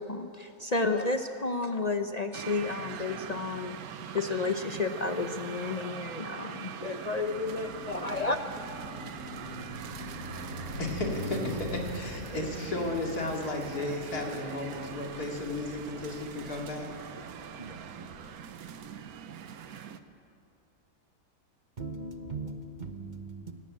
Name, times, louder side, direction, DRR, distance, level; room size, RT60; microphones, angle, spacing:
voice 1, 0.0-3.8 4.1-8.4, left 3 dB, 45° left, 6 dB, 0.5 m, -31 dB
sound 1, 2.3-20.0, right 8 dB, 75° right, 1.3 m, -43 dB
Car passing by, 7.0-19.2, left 1 dB, 60° left, 6.0 m, -43 dB
voice 2, 10.8-16.9, left 2 dB, 80° left, 0 dB, 3.1 m, -34 dB
voice 3, 17.6-18.4 18.6-18.7 21.8-23.5, right 3 dB, 35° right, 7 dB, 1.0 m, -40 dB
17.5 x 17.0 x 8.8 m, 2.6 s
omnidirectional pair, 1.6 m